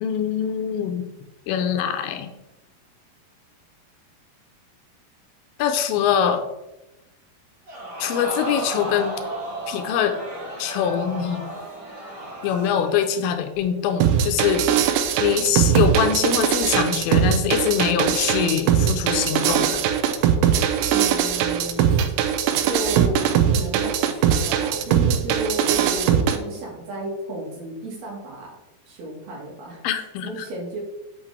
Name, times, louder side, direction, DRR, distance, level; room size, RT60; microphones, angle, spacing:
voice 1, 0.0-1.1 1.5-2.3 5.6-6.5 8.0-9.2 9.7-10.2 10.6-11.5 12.4-19.8 29.8-30.3, left 8 dB, 80° left, 7 dB, 2.3 m, -23 dB
Crowd, 7.7-13.1 13.6-13.7, right 1 dB, 30° right, 2.0 m, -33 dB
sound 1, 14.0-26.4, right 9 dB, 80° right, 2.7 m, -20 dB
voice 2, 20.9-21.9 22.6-28.6 28.9-30.8, right 1 dB, 65° right, -2 dB, 3.8 m, -33 dB
8.5 x 8.1 x 3.4 m, 0.95 s
omnidirectional pair, 4.9 m